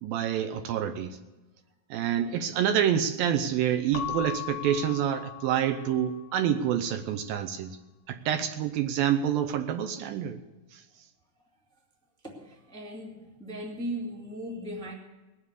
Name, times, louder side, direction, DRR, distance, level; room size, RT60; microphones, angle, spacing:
voice 1, 0.0-1.2 1.9-7.8 8.1-10.4 10.7-10.8, right 9 dB, 80° right, 8 dB, 2.3 m, -27 dB
Keyboard (musical) / Bell, 3.9-6.4, left 13 dB, 85° left, 2.6 m, -38 dB
voice 2, 12.2-14.9, equal, ahead, -1 dB, 1.2 m, -37 dB
19.5 x 7.3 x 8.2 m, 1.1 s
omnidirectional pair, 4.4 m